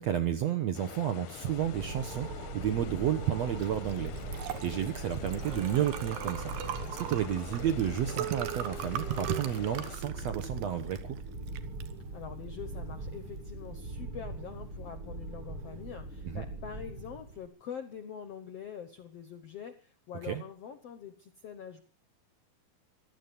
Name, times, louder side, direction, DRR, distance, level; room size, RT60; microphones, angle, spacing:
voice 1, 0.0-4.1 4.4-11.2 16.2-16.5 20.2-20.4, right 10 dB, 65° right, 8 dB, 1.7 m, -32 dB
sound 1, 0.7-10.0, left 12 dB, 85° left, 2.8 m, -46 dB
sound 2, 1.5-17.5, right 2 dB, 45° right, 2.0 m, -41 dB
Liquid, 3.6-13.7, right 11 dB, 85° right, 3.2 m, -41 dB
voice 2, 12.1-21.8, left 8 dB, 65° left, 9 dB, 1.5 m, -44 dB
16.0 x 12.5 x 7.0 m, 0.42 s
omnidirectional pair, 4.4 m